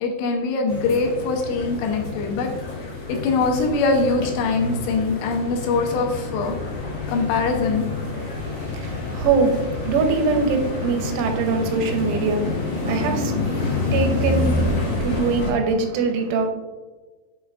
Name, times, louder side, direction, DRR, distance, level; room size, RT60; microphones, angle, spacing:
voice 1, 0.0-2.5 3.1-6.6 7.1-7.9, left 4 dB, 80° left, 2 dB, 2.8 m, -22 dB
sound 1, 0.7-15.5, left 3 dB, 50° left, 2.6 m, -28 dB
voice 2, 8.0-16.5, right 4 dB, 85° right, 5 dB, 3.3 m, -23 dB
7.2 x 5.6 x 2.5 m, 1.3 s
omnidirectional pair, 5.4 m